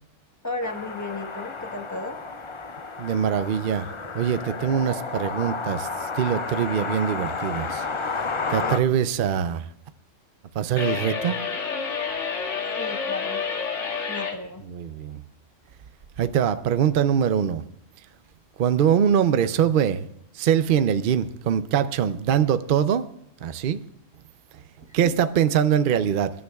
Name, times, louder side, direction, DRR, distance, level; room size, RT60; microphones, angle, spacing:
voice 1, 0.4-2.2 8.6-8.8 12.8-13.4 14.1-14.6 24.8-25.0, left 2 dB, 15° left, 4 dB, 1.1 m, -34 dB
sound 1, 0.6-8.8, left 4 dB, 30° left, 0.6 m, -32 dB
voice 2, 3.0-3.9 4.1-5.9 6.1-7.8 8.5-9.6 10.5-11.4 14.7-15.2 16.2-17.6 18.6-20.1 20.3-23.0 23.4-23.8 24.9-26.3, right 8 dB, 55° right, 11 dB, 0.6 m, -23 dB
sound 2, 10.8-14.4, left 6 dB, 75° left, 1.7 m, -29 dB
25.5 x 11.0 x 2.3 m, 0.74 s
omnidirectional pair, 1.3 m